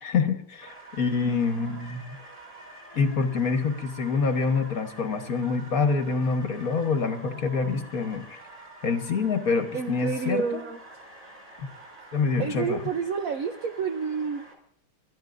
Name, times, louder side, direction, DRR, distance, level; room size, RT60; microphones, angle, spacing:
voice 1, 0.0-2.0 2.9-8.4 8.8-10.4 11.6-11.7 12.1-12.8, left 4 dB, 45° left, 7 dB, 1.5 m, -26 dB
sound 1, 0.6-14.5, right 2 dB, 35° right, 5.7 m, -47 dB
voice 2, 9.7-10.8 12.4-14.5, right 6 dB, 70° right, 7 dB, 0.8 m, -29 dB
29.0 x 13.5 x 2.6 m, 0.68 s
omnidirectional pair, 2.4 m